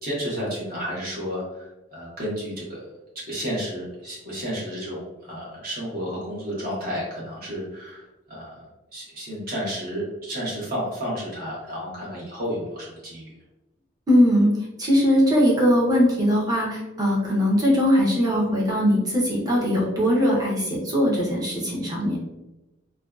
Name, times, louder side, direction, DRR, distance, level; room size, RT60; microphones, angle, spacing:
voice 1, 0.0-2.9 3.1-8.6 8.9-13.3, equal, 50° right, -6 dB, 0.9 m, -32 dB
voice 2, 14.1-14.5 14.8-22.2, equal, 20° right, -4 dB, 0.6 m, -20 dB
2.5 x 2.2 x 2.3 m, 0.99 s
head